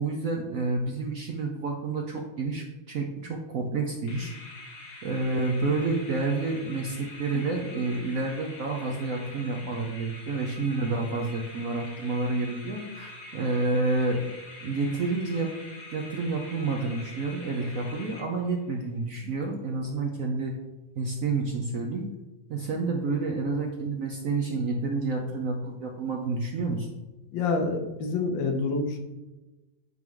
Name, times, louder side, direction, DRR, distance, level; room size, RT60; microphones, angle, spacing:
voice 1, 0.0-4.3 5.0-14.3 14.6-15.5 15.9-20.5 20.9-22.1 22.5-26.9, right 3 dB, 60° right, 1 dB, 0.9 m, -29 dB
sound 1, 4.1-18.7, left 2 dB, 55° left, 1.8 m, -45 dB
voice 2, 27.3-29.0, left 3 dB, 75° left, 3 dB, 1.6 m, -27 dB
7.7 x 4.6 x 3.7 m, 1.1 s
omnidirectional pair, 2.1 m